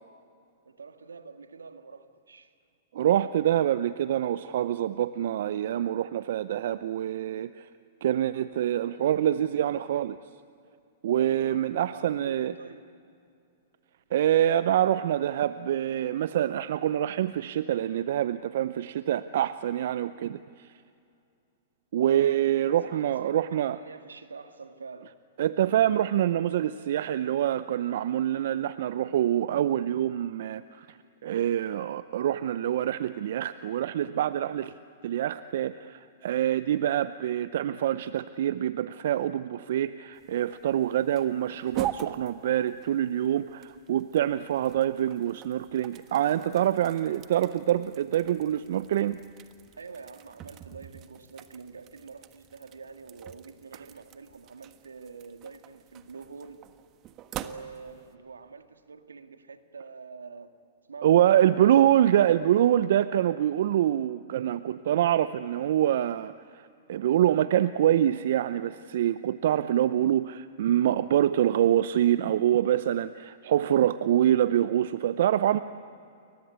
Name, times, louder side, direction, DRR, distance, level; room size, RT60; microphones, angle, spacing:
voice 1, 0.7-2.5 11.2-11.6 11.9-13.0 22.0-22.4 22.7-25.1 49.8-56.6 57.3-60.5 60.9-61.3, right 5 dB, 85° right, 8 dB, 1.8 m, -46 dB
voice 2, 2.9-7.7 8.0-10.2 11.0-12.5 14.1-20.7 21.9-23.8 25.4-34.7 35.0-49.2 61.0-75.6, right 11 dB, 65° right, 14 dB, 0.6 m, -25 dB
sound 1, 40.1-58.2, right 11 dB, 35° right, 1.4 m, -44 dB
29.5 x 23.0 x 8.4 m, 2.5 s
hypercardioid pair, 110°, 0 cm